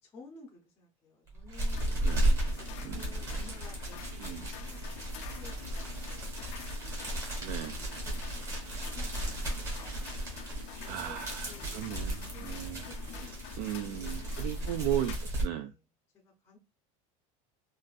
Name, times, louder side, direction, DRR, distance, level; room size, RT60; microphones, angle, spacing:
voice 1, 0.0-2.0 2.6-6.6 7.3-10.3 10.9-11.2 11.5-11.8 12.3-15.3 15.6-15.8 16.1-16.6, left 3 dB, 15° left, 0.6 m, -55 dB
sound 1, 1.3-15.4, right 1 dB, 20° right, 1.4 m, -34 dB
sound 2, 1.7-15.2, left 10 dB, 60° left, 0.4 m, -47 dB
voice 2, 2.0-2.4 2.8-3.1 4.2-4.5 7.4-7.8 10.8-12.9 13.6-15.7, right 12 dB, 75° right, 0.4 m, -36 dB
sound 3, 5.7-12.1, right 4 dB, 50° right, 0.7 m, -54 dB
3.7 x 2.5 x 2.4 m
cardioid pair, 175°, 17 cm